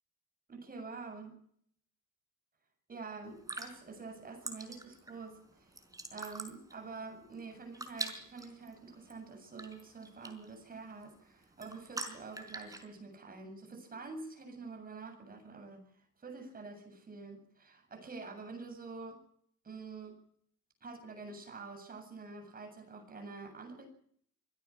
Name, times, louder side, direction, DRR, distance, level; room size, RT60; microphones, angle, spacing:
voice 1, 0.5-1.4 2.9-5.8 6.1-19.2 19.6-20.2 20.8-23.9, right 4 dB, 25° right, 6 dB, 7.8 m, -47 dB
sound 1, 3.2-12.8, right 2 dB, 10° right, 4.9 m, -46 dB
25.0 x 17.0 x 7.3 m, 0.64 s
cardioid pair, 150°, 32 cm